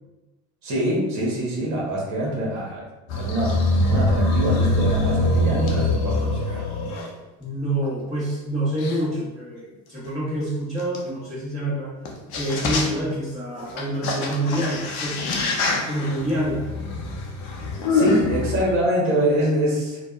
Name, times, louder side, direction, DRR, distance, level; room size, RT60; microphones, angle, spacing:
voice 1, 0.6-2.8 3.1-3.5 3.8-6.6 17.9-20.0, right 1 dB, 40° right, -4 dB, 1.0 m, -25 dB
voice 2, 2.1-2.4 7.4-11.9 12.3-16.7, right 1 dB, 10° right, -14 dB, 1.2 m, -27 dB
sound 1, 3.1-7.1 7.8-7.9 8.8-8.9 10.9-11.0 12.0-12.1 12.3-13.1 13.6-18.6, left 2 dB, 60° left, 0.7 m, -23 dB
2.7 x 2.2 x 2.3 m, 1.1 s
hypercardioid pair, 80°, 41 cm